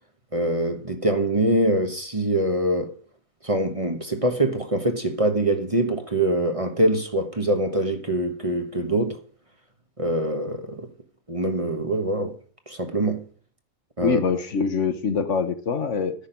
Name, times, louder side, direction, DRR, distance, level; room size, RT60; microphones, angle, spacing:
voice 1, 0.3-2.9 3.4-9.2 10.0-10.9 11.3-12.4 12.7-13.2 14.0-14.2, right 1 dB, 25° right, 1.3 m, -24 dB
voice 2, 14.0-16.1, left 5 dB, 60° left, 1.4 m, -24 dB
10.0 x 6.4 x 9.0 m
omnidirectional pair, 1.4 m